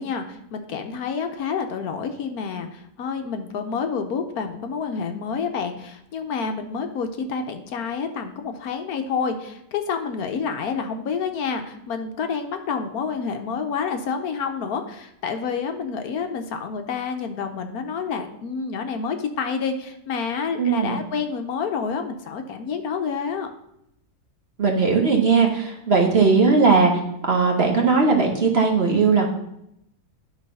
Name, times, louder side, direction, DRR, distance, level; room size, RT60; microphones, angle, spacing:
voice 1, 0.0-23.5, left 5 dB, 70° left, 6 dB, 1.1 m, -28 dB
voice 2, 20.6-21.0 24.6-26.9 27.3-29.3, right 4 dB, 40° right, 1 dB, 1.2 m, -18 dB
10.5 x 4.0 x 5.3 m, 0.78 s
omnidirectional pair, 1.8 m